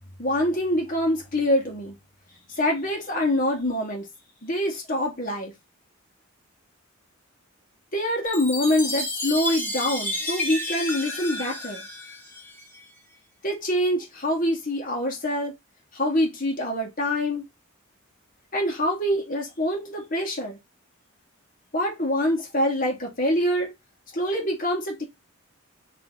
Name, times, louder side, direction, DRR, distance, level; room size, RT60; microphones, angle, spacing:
voice 1, 0.2-2.0 2.6-4.1 4.4-5.5 7.9-11.9 13.4-15.5 15.9-17.4 18.5-20.6 21.7-23.7 24.1-25.0, left 1 dB, 40° left, 1.9 m, -25 dB
Chime, 8.3-12.8, left 2 dB, 10° left, 1.0 m, -31 dB
3.9 x 3.4 x 4.0 m
head